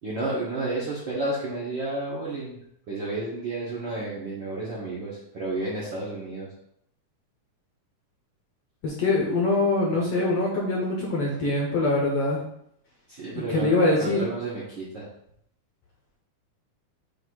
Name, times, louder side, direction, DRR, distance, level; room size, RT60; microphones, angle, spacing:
voice 1, 0.0-2.6 2.9-6.5 13.1-15.1, right 2 dB, 60° right, -7 dB, 1.2 m, -31 dB
voice 2, 8.8-12.4 13.3-14.3, left 2 dB, 65° left, -2 dB, 1.6 m, -23 dB
7.8 x 2.7 x 4.6 m, 0.73 s
omnidirectional pair, 3.7 m